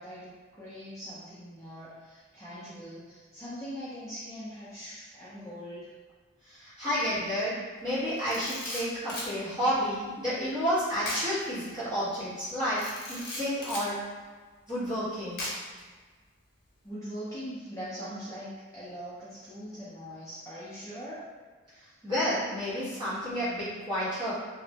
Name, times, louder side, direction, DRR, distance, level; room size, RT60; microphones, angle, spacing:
voice 1, 0.0-5.9 16.8-21.2, equal, 15° left, -11 dB, 0.5 m, -41 dB
voice 2, 6.4-14.0 14.7-15.4 21.8-24.3, equal, 20° right, -13 dB, 1.3 m, -31 dB
Camera, 8.2-9.3 11.0-11.3 11.6-11.8 12.8-13.9 15.4-15.8, left 1 dB, 50° left, 0.8 m, -37 dB
3.0 x 2.1 x 2.8 m, 1.4 s
head